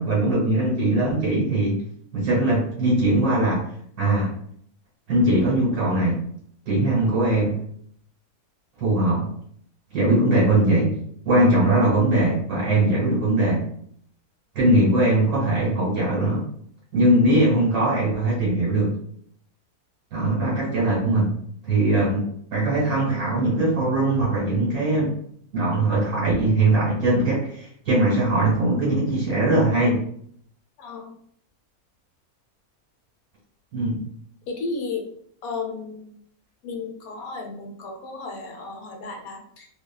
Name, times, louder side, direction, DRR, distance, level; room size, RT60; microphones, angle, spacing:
voice 1, 0.0-1.8 2.1-3.7 4.0-4.3 5.1-6.2 6.7-7.6 8.8-9.3 9.9-11.0 11.2-13.6 14.6-16.5 16.9-19.0 20.1-21.3 21.6-25.1 25.5-30.0 33.7-34.0, right 1 dB, 80° right, -8 dB, 1.8 m, -21 dB
voice 2, 30.8-31.1 34.5-35.1 35.4-36.2 36.6-39.7, left 4 dB, 75° left, 2 dB, 1.1 m, -33 dB
3.2 x 2.2 x 2.2 m, 0.64 s
omnidirectional pair, 1.6 m